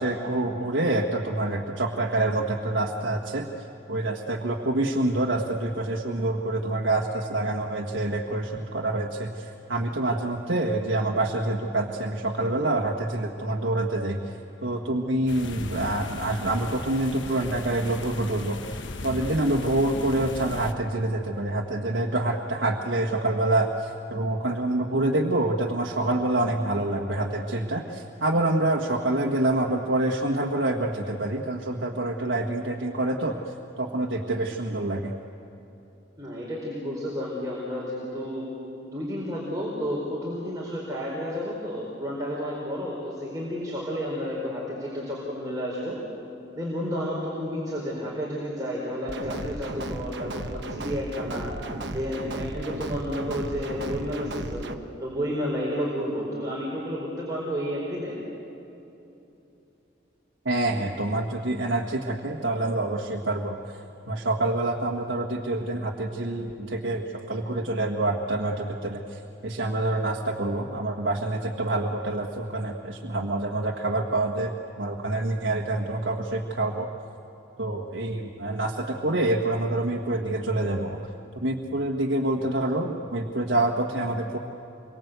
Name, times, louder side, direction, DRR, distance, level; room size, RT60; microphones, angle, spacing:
voice 1, 0.0-3.5 3.9-14.2 14.6-18.6 19.0-33.4 33.8-35.1 60.4-63.6 64.1-76.9 77.6-81.0 81.4-84.4, right 2 dB, 75° right, 0 dB, 1.6 m, -26 dB
sound 1, 15.3-20.7, left 2 dB, 75° left, 1.2 m, -37 dB
voice 2, 36.2-38.4 38.8-46.0 46.6-51.5 51.9-54.7 55.0-58.2, equal, 20° right, -5 dB, 4.6 m, -31 dB
sound 2, 49.1-54.7, right 2 dB, 60° right, 1.2 m, -35 dB
27.5 x 23.5 x 8.2 m, 2.9 s
head